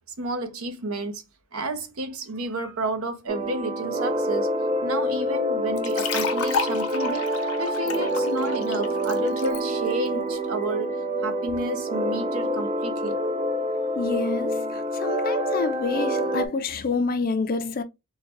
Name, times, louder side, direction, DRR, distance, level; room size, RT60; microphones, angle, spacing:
voice 1, 0.2-1.2 1.5-4.5 4.8-7.3 7.6-11.0 11.2-13.2, right 2 dB, 70° right, 0.8 m, -31 dB
sound 1, 3.3-16.5, equal, 30° right, 0.4 m, -27 dB
sound 2, 5.8-9.6, left 6 dB, 75° left, 0.7 m, -31 dB
voice 2, 14.0-17.8, left 4 dB, 40° left, 0.4 m, -28 dB
3.7 x 2.2 x 2.9 m
head